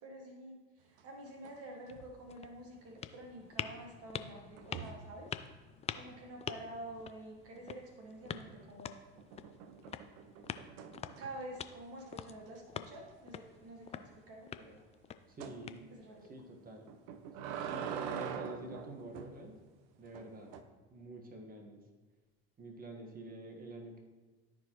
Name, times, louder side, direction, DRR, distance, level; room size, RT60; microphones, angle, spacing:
voice 1, 0.0-5.3 5.9-9.0 11.2-14.8 15.9-16.6, right 1 dB, 45° right, 1 dB, 1.4 m, -49 dB
sound 1, 1.0-1.6 1.9-2.2 4.6-5.1 8.2-8.7 9.2-11.5 12.0-12.1 12.5-12.6 12.9-13.0 15.4-15.6 16.9-19.4 20.1-20.6, right 8 dB, 60° right, 0.7 m, -44 dB
sound 2, 1.7-16.3, left 8 dB, 20° left, 0.4 m, -47 dB
voice 2, 15.3-15.9 16.2-16.8 17.6-19.6 20.0-20.5 20.9-21.8 22.6-24.0, right 1 dB, 25° right, 2 dB, 1.5 m, -47 dB
13.0 x 4.7 x 3.0 m, 1.3 s
hypercardioid pair, 80°, 32 cm